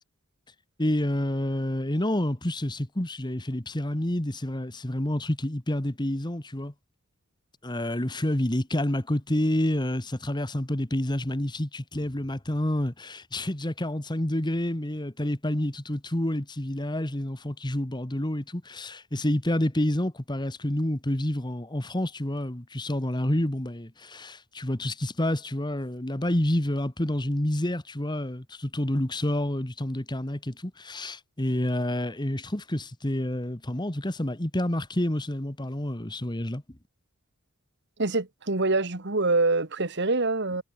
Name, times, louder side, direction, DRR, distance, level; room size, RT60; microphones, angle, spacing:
voice 1, 0.8-6.7 7.6-36.6, left 1 dB, 20° left, 1.5 m, -28 dB
voice 2, 38.0-40.6, right 3 dB, 50° right, 1.8 m, -25 dB
head